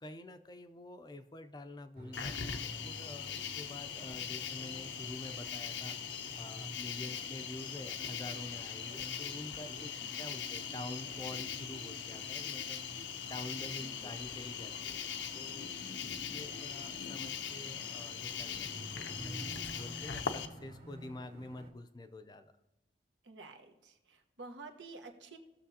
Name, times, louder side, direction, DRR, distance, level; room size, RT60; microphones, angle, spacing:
voice 1, 0.0-6.0 6.4-9.9 10.2-12.8 13.2-15.0 15.3-15.7 16.0-22.5, left 1 dB, 25° left, 8 dB, 0.5 m, -47 dB
sound 1, 2.0-21.7, right 1 dB, 50° right, 2.2 m, -52 dB
Cricket, 2.1-20.5, left 7 dB, 80° left, 0.7 m, -41 dB
voice 2, 13.8-14.1 16.3-16.6 23.2-25.4, right 3 dB, 85° right, 4 dB, 1.2 m, -51 dB
19.0 x 6.6 x 2.8 m, 1.1 s
head